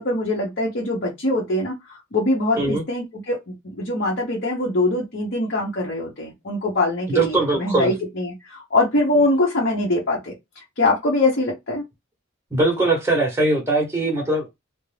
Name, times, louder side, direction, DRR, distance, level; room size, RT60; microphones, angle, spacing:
voice 1, 0.0-11.8, left 2 dB, 55° left, 0.8 m, -23 dB
voice 2, 7.1-7.9 12.5-14.5, right 2 dB, 15° right, 0.8 m, -21 dB
2.5 x 2.1 x 3.2 m
head